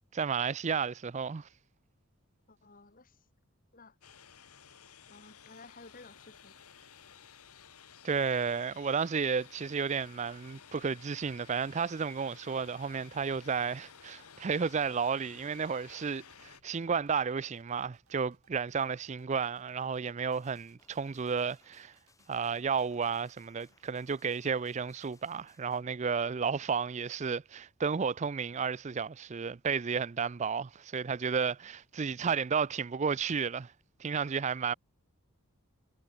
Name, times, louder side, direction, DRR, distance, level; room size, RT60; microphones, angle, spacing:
voice 1, 0.1-1.5 8.0-21.9 22.3-33.7 34.0-34.7, right 6 dB, 30° right, 0.4 m, -32 dB
voice 2, 2.5-3.3 3.7-4.0 5.1-6.6, left 3 dB, 40° left, 1.8 m, -54 dB
sound 1, 4.0-16.6, left 7 dB, 90° left, 2.2 m, -55 dB
sound 2, 9.8-24.5, right 5 dB, 80° right, 3.3 m, -70 dB
sound 3, 20.3-25.8, left 4 dB, 15° left, 3.5 m, -67 dB
head